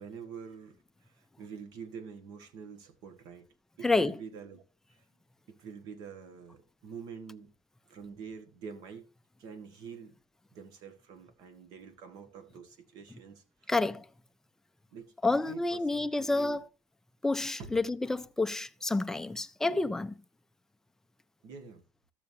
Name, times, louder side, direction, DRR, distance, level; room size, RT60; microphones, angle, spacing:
voice 1, 0.0-3.5 3.8-4.6 5.5-7.5 7.9-9.1 9.4-10.2 10.5-13.7 14.9-16.6 17.6-17.7 21.4-21.9, right 6 dB, 55° right, 1.7 m, -46 dB
voice 2, 3.8-4.2 13.7-14.1 15.2-16.7 17.2-20.2, left 2 dB, 5° left, 0.4 m, -29 dB
14.5 x 6.8 x 2.8 m
cardioid pair, 160°, 8 cm